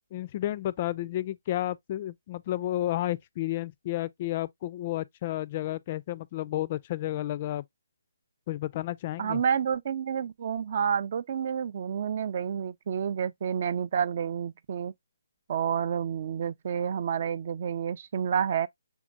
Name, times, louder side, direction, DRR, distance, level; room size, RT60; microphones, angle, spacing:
voice 1, 0.1-7.6 8.5-9.4, left 14 dB, 35° left, 0.3 m, -31 dB
voice 2, 9.2-14.9 15.5-18.7, right 7 dB, 45° right, 0.3 m, -29 dB
6.0 x 3.6 x 2.3 m
figure-of-eight pair, 145°, 0 cm